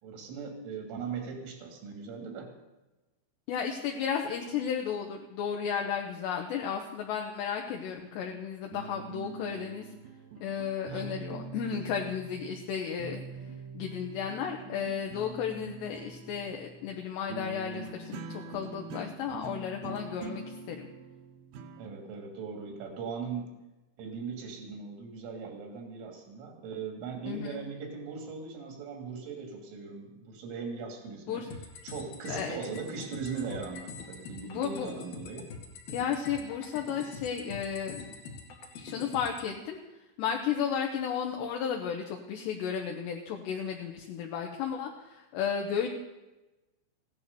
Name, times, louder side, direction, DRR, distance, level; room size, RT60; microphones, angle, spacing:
voice 1, 0.0-2.5 10.9-11.1 21.8-23.6 24.0-31.4 31.8-35.5, right 5 dB, 85° right, 3 dB, 5.3 m, -39 dB
voice 2, 3.5-9.8 10.4-13.2 13.7-20.9 27.3-27.6 31.3-31.5 32.3-32.6 34.4-34.9 35.9-38.0 38.8-39.8 40.2-45.9, left 7 dB, 75° left, 2 dB, 3.0 m, -33 dB
sound 1, 8.2-12.7 13.0-21.9, right 4 dB, 65° right, 2.5 m, -44 dB
sound 2, 31.5-39.5, left 4 dB, 55° left, 3.5 m, -44 dB
16.0 x 11.0 x 6.8 m, 1.1 s
omnidirectional pair, 5.5 m